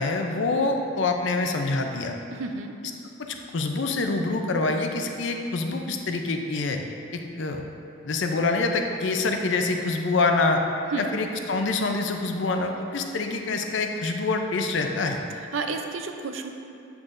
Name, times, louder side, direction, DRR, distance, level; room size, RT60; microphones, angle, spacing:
voice 1, 0.0-2.2 3.2-6.8 7.1-7.6 8.0-10.6 11.0-15.2, left 3 dB, 70° left, 4 dB, 0.5 m, -26 dB
voice 2, 2.3-2.7 10.9-11.1 15.4-16.5, right 4 dB, 85° right, 5 dB, 0.5 m, -31 dB
8.0 x 6.0 x 2.5 m, 2.6 s
head